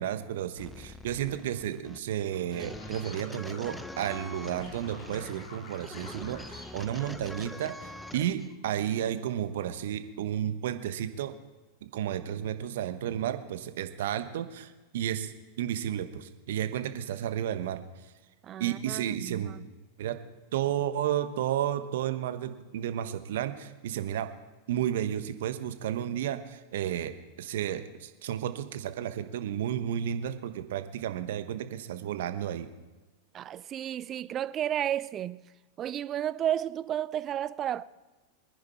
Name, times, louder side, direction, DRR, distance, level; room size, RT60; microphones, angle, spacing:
voice 1, 0.0-11.3 11.8-15.3 15.6-17.8 18.6-19.5 20.0-20.2 20.5-24.3 24.7-27.1 27.4-32.7, right 10 dB, 65° right, 1.1 m, -32 dB
sound 1, 0.6-8.5, left 1 dB, 5° left, 0.8 m, -44 dB
sound 2, 2.3-3.8 4.0-6.7 7.0-7.8 8.1-8.5, left 3 dB, 45° left, 4.6 m, -50 dB
voice 2, 18.4-19.6 33.3-35.4 35.8-37.8, right 11 dB, 35° right, 0.5 m, -32 dB
23.5 x 10.5 x 4.4 m
figure-of-eight pair, 90°, 0 cm